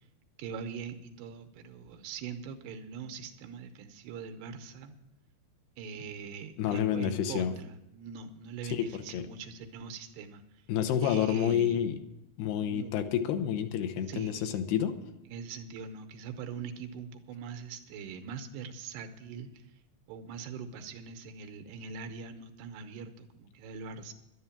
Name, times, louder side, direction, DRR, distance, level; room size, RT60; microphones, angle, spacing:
voice 1, 0.4-4.9 5.8-10.4 11.0-11.8 12.6-12.9 14.1-14.5 15.3-19.5 20.1-24.1, right 6 dB, 80° right, 7 dB, 2.9 m, -42 dB
voice 2, 6.6-7.5 8.7-8.9 9.1-9.2 10.7-12.0 12.4-15.0, left 9 dB, 80° left, 8 dB, 2.8 m, -29 dB
11.0 x 11.0 x 7.3 m, 0.90 s
omnidirectional pair, 4.8 m